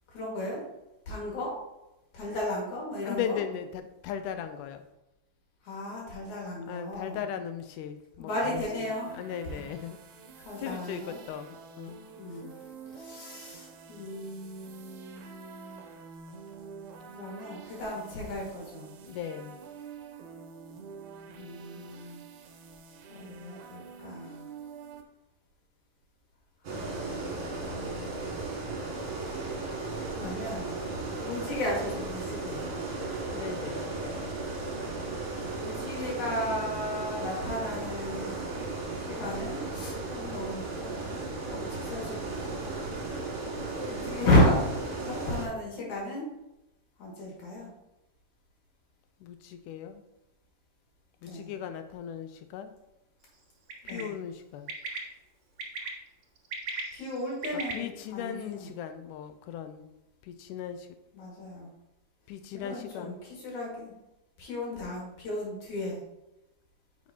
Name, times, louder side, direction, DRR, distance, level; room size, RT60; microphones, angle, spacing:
voice 1, 0.1-0.6 1.1-1.6 2.1-3.4 5.6-7.2 8.2-9.1 9.5-9.6 10.4-11.2 12.2-12.5 12.9-15.8 17.1-18.9 21.3-22.2 23.1-24.4 26.6-28.3 30.1-30.7 31.2-32.7 35.5-38.3 39.0-42.6 43.9-46.3 47.0-47.7 51.2-51.5 53.8-54.1 56.9-58.7 61.1-61.7 62.5-63.9 64.4-66.0, left 1 dB, 65° left, -3 dB, 3.3 m, -33 dB
voice 2, 3.0-4.8 6.7-8.6 9.1-10.0 10.4-12.4 19.0-19.6 33.3-33.9 49.2-50.0 51.2-52.7 53.8-54.7 57.7-59.9 60.2-60.9 62.3-63.2, left 9 dB, 80° left, 8 dB, 2.0 m, -38 dB
sound 1, 8.3-25.0, right 6 dB, 70° right, 2.1 m, -48 dB
sound 2, 26.6-45.5, right 3 dB, 55° right, 2.6 m, -35 dB
Bird, 53.7-54.0 54.7-55.0 55.6-55.9 56.4-57.7, right 4 dB, 90° right, 1.0 m, -36 dB
8.8 x 5.9 x 2.8 m, 0.93 s
omnidirectional pair, 3.8 m